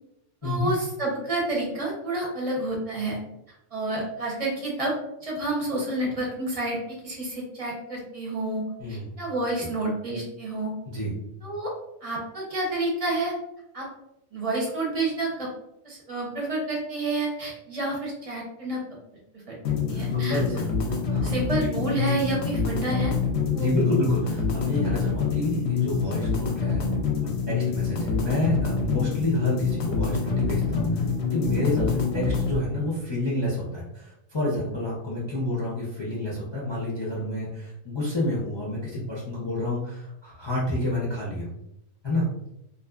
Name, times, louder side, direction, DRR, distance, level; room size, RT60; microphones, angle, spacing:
voice 1, 0.4-3.2 3.7-4.9 5.2-10.7 11.4-11.7 12.0-13.3 13.7-13.9 14.3-15.5 15.8-18.8 19.3-19.6 19.9-20.4 21.2-23.1 23.5-23.7, right 2 dB, 45° right, -3 dB, 0.5 m, -29 dB
voice 2, 8.8-9.1 10.9-11.1 19.9-20.7 21.1-21.3 23.5-26.9 27.5-31.0 31.3-41.5 42.0-42.3, left 1 dB, 35° left, -6 dB, 0.4 m, -29 dB
sound 1, 19.7-32.6, left 5 dB, 65° left, 0.7 m, -26 dB
2.6 x 2.4 x 2.3 m, 0.82 s
omnidirectional pair, 1.4 m